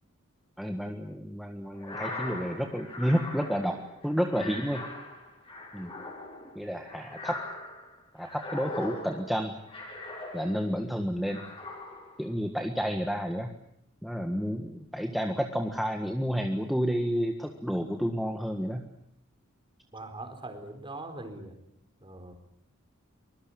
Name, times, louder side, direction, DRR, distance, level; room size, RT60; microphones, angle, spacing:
voice 1, 0.6-3.8 4.0-4.8 5.7-5.9 6.5-7.4 8.1-9.5 10.3-11.4 12.2-13.5 14.0-18.8, equal, ahead, 3 dB, 1.6 m, -30 dB
sound 1, 1.7-10.8 11.2-12.3, left 2 dB, 25° left, 7.6 m, -41 dB
voice 2, 19.9-21.6 22.0-22.3, right 2 dB, 25° right, 7 dB, 4.4 m, -41 dB
24.5 x 21.5 x 8.8 m, 0.72 s
head